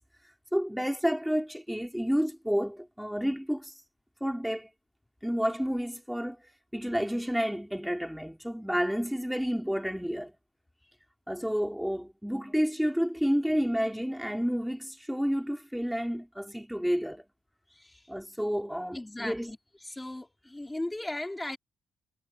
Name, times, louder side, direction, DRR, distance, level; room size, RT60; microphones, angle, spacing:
voice 1, 0.5-3.7 4.2-4.7 5.2-6.4 6.7-10.3 11.3-17.2 18.1-19.5, equal, ahead, 4.5 m, -30 dB
voice 2, 18.9-19.6 19.8-21.6, left 1 dB, 15° left, 4.7 m, -37 dB
supercardioid pair, 50°, 0 cm